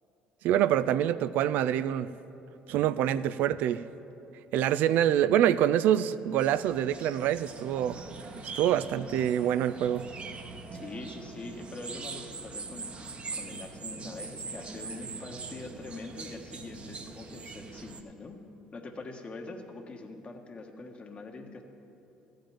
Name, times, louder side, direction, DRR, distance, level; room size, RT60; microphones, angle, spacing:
voice 1, 0.4-2.1 2.7-3.8 4.5-8.0 8.5-10.0, right 11 dB, 70° right, 14 dB, 0.3 m, -26 dB
sound 1, 6.4-18.0, right 4 dB, 40° right, 1.0 m, -42 dB
voice 2, 10.7-18.4 18.7-21.6, left 3 dB, 35° left, 3 dB, 1.3 m, -43 dB
14.0 x 5.2 x 8.9 m, 3.0 s
supercardioid pair, 70°, 3 cm